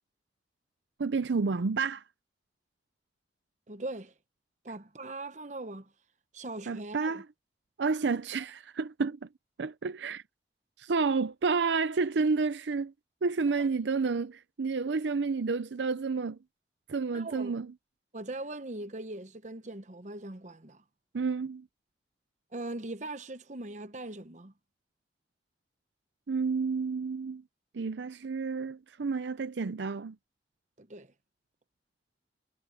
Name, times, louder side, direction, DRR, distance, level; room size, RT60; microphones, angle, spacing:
voice 1, 1.0-2.0 6.7-7.2 7.8-9.3 9.6-10.2 10.8-12.9 13.2-16.4 16.9-17.7 21.1-21.7 26.3-27.4 27.7-30.2, right 4 dB, 85° right, 0.6 m, -30 dB
voice 2, 3.7-4.1 4.6-5.9 6.3-7.2 13.6-13.7 17.1-17.6 18.1-20.8 22.5-24.5 30.8-31.1, right 2 dB, 40° right, 1.0 m, -40 dB
head